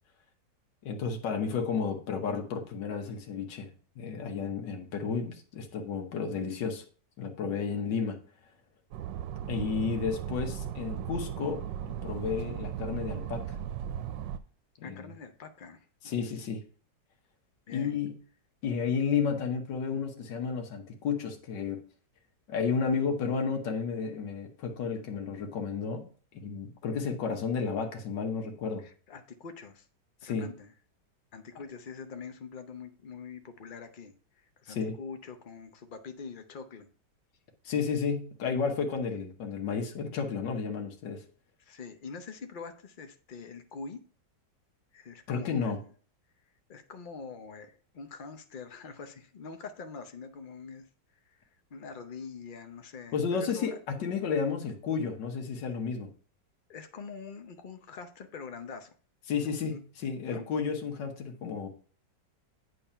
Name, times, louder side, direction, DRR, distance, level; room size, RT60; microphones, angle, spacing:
voice 1, 0.8-3.7 4.0-6.8 7.2-8.2 9.5-13.6 14.8-15.1 16.0-16.6 17.7-18.1 18.6-21.8 22.5-26.1 26.3-28.8 30.2-30.5 34.7-35.0 37.7-41.2 45.3-45.8 53.1-56.1 59.3-61.7, left 5 dB, 85° left, 3 dB, 1.7 m, -32 dB
sound 1, 8.9-14.4, right 10 dB, 90° right, 1.2 m, -36 dB
voice 2, 14.8-16.3 17.7-18.0 28.8-29.9 30.2-30.7 31.3-36.9 41.6-44.0 44.9-45.9 46.7-50.9 51.2-53.8 56.7-58.9 59.4-59.8 60.3-60.4, left 5 dB, 50° left, 8 dB, 0.6 m, -44 dB
8.8 x 3.8 x 5.5 m, 0.42 s
omnidirectional pair, 1.9 m